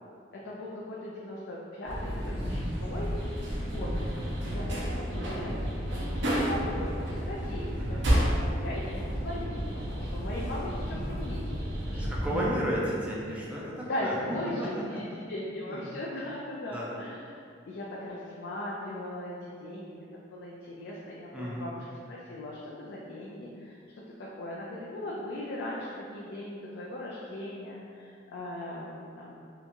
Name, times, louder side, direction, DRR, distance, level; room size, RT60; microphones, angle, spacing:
voice 1, 0.3-3.1 3.6-3.9 4.4-9.6 9.9-12.1 13.8-17.4 17.7-29.3, left 1 dB, 60° left, -5 dB, 0.3 m, -39 dB
sound 1, 1.8-12.4, equal, 65° right, 0.5 m, -31 dB
voice 2, 7.8-8.1 10.4-10.5 11.9-14.2 14.6-15.8 16.7-16.9 21.3-21.7, equal, 5° right, -6 dB, 0.4 m, -34 dB
2.8 x 2.3 x 2.5 m, 2.4 s
head